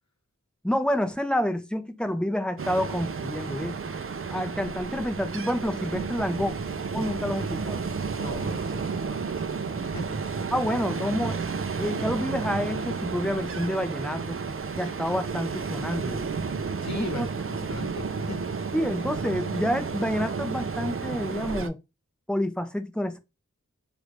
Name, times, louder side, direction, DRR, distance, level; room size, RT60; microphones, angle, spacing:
voice 1, 0.6-3.8 4.3-6.5 6.9-7.8 10.5-11.4 11.8-14.4 14.8-16.3 16.9-17.3 18.7-21.8 22.3-23.2, equal, 5° left, 0.6 m, -28 dB
Ocean, 2.6-21.7, right 5 dB, 45° right, 0.4 m, -32 dB
voice 2, 8.2-10.5 10.8-11.0 16.8-18.7, left 2 dB, 60° left, 1.0 m, -39 dB
3.1 x 2.5 x 3.1 m
wide cardioid pair, 45°, 31 cm